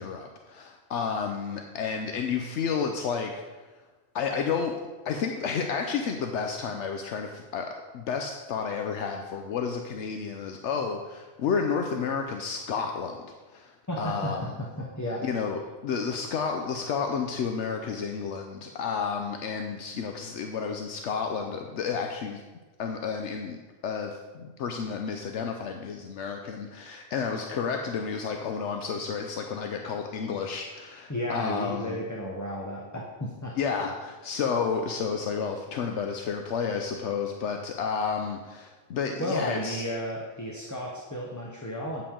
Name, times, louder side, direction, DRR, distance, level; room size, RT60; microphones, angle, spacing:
voice 1, 0.0-3.7 4.1-4.7 5.0-14.5 15.2-22.4 22.8-32.0 33.6-39.8, left 6 dB, 75° left, 4 dB, 0.9 m, -31 dB
voice 2, 13.9-14.3 14.8-15.2 31.1-33.6 39.2-42.0, equal, 15° left, -3 dB, 0.9 m, -33 dB
8.6 x 7.6 x 3.7 m, 1.3 s
omnidirectional pair, 1.2 m